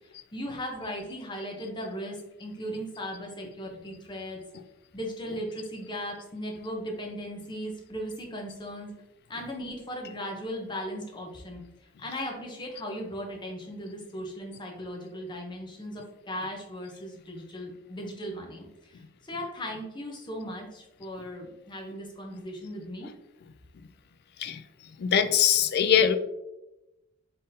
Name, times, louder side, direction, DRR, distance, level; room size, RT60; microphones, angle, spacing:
voice 1, 0.3-4.4 4.9-8.9 9.3-11.6 12.0-23.1, equal, 20° left, 0 dB, 0.7 m, -37 dB
voice 2, 25.0-26.2, left 9 dB, 50° left, 9 dB, 0.3 m, -22 dB
3.9 x 3.8 x 2.7 m, 0.95 s
head